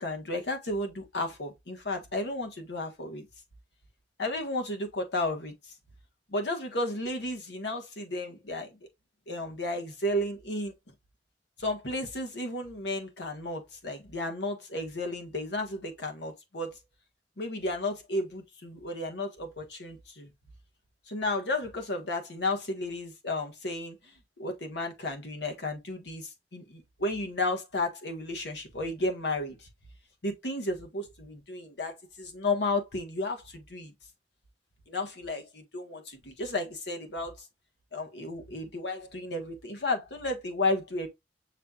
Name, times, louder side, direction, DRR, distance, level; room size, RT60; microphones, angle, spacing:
voice 1, 0.0-3.2 4.2-5.7 6.3-8.7 9.3-10.7 11.6-16.8 17.4-20.3 21.1-24.0 24.4-29.7 30.2-33.9 34.9-37.4 37.9-41.1, left 2 dB, 75° left, 1.4 m, -33 dB
6.9 x 3.2 x 2.4 m
head